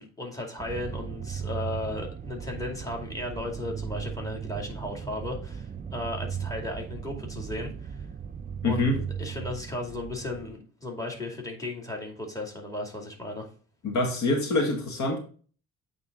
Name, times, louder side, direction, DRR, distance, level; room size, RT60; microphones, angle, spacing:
voice 1, 0.0-8.0 8.6-13.5, left 2 dB, 10° left, 2 dB, 2.4 m, -35 dB
sound 1, 0.6-10.6, right 7 dB, 30° right, 0.5 m, -37 dB
voice 2, 8.6-9.0 13.8-15.2, left 2 dB, 70° left, 3 dB, 1.9 m, -25 dB
8.5 x 3.7 x 3.8 m, 0.40 s
cardioid pair, 90°, 30 cm